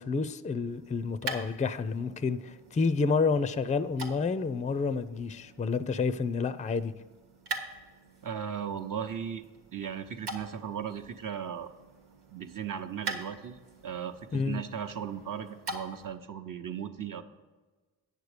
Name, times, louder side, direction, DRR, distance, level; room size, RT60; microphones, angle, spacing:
voice 1, 0.0-6.9 14.3-14.6, left 4 dB, 20° left, 15 dB, 0.5 m, -29 dB
sound 1, 0.6-16.2, right 3 dB, 85° right, 1.3 m, -44 dB
voice 2, 8.2-9.4 9.7-11.7 12.3-13.6 13.8-17.2, right 8 dB, 50° right, 7 dB, 0.9 m, -37 dB
9.1 x 6.7 x 5.0 m, 1.3 s
supercardioid pair, 55°, 41 cm